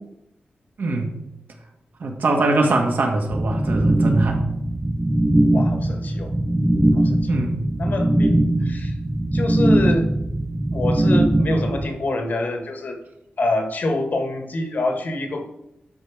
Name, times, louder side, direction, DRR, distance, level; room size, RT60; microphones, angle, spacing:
voice 1, 0.8-1.2 2.0-4.4 7.3-7.6 8.6-8.7, right 2 dB, 65° right, 2 dB, 1.9 m, -22 dB
sound 1, 3.3-11.9, right 1 dB, 10° right, 0.5 m, -20 dB
voice 2, 5.5-6.3 6.9-7.3 7.8-8.9 9.3-10.1 10.7-13.0 13.4-15.5, left 2 dB, 55° left, 4 dB, 1.6 m, -26 dB
12.0 x 5.8 x 5.0 m, 0.84 s
wide cardioid pair, 125°, 4 cm